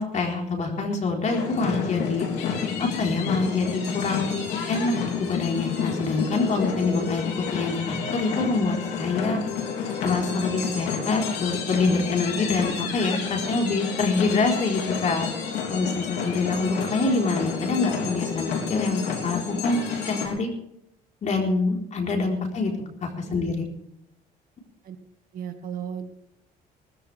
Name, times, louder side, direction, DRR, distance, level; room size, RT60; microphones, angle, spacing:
voice 1, 0.0-2.3 2.8-4.4 4.7-9.4 10.0-15.3 15.7-19.8 20.1-20.5 21.2-22.7 23.0-23.7, left 3 dB, 45° left, 1 dB, 4.3 m, -25 dB
sound 1, 1.3-20.3, left 6 dB, 85° left, 3.3 m, -30 dB
voice 2, 25.3-26.2, right 8 dB, 55° right, 5 dB, 2.1 m, -35 dB
19.5 x 14.0 x 3.5 m, 0.79 s
cardioid pair, 110°, 17 cm